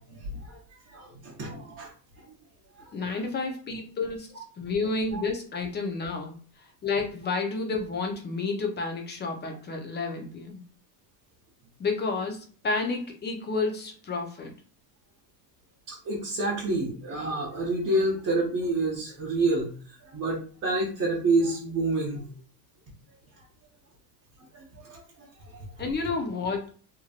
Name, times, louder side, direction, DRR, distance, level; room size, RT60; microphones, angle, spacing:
voice 1, 0.1-0.6 0.9-1.9 2.9-3.0 5.1-5.2 15.9-19.7 20.0-22.2 24.5-24.6 24.9-25.0, right 2 dB, 35° right, -5 dB, 1.0 m, -28 dB
voice 2, 2.9-4.3 4.6-6.3 6.8-10.6 11.8-14.5 25.8-26.7, left 3 dB, 25° left, 3 dB, 0.6 m, -30 dB
3.0 x 2.6 x 2.4 m, 0.41 s
cardioid pair, 125°, 45 cm